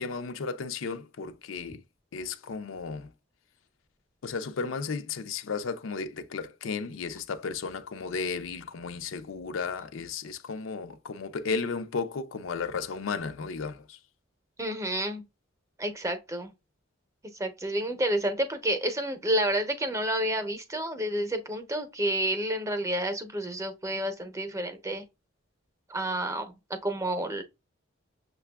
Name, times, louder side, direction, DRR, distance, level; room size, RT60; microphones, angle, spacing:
voice 1, 0.0-1.8 2.1-3.1 4.2-14.0, left 5 dB, 90° left, 0.5 m, -34 dB
voice 2, 14.6-15.2 15.8-16.5 17.3-25.0 25.9-27.4, right 1 dB, 15° right, 0.7 m, -30 dB
6.5 x 2.3 x 2.2 m
head